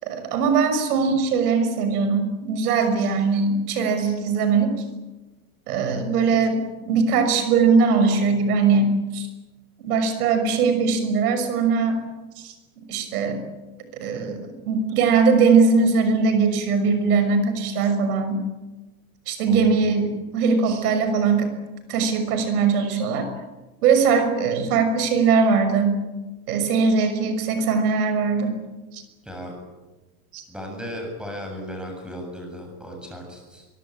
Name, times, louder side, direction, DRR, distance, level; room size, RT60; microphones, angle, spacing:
voice 1, 0.0-4.7 5.7-9.3 9.8-12.0 12.4-12.5 12.9-13.4 14.0-14.4 14.7-18.4 19.3-21.5 21.9-23.3 23.8-25.9 26.5-28.6 28.9-29.0 30.3-30.4, right 5 dB, 80° right, 8 dB, 6.2 m, -20 dB
voice 2, 19.5-19.8 29.2-29.5 30.5-33.7, equal, ahead, 2 dB, 7.6 m, -36 dB
24.0 x 23.5 x 8.9 m, 1.2 s
supercardioid pair, 155°, 44 cm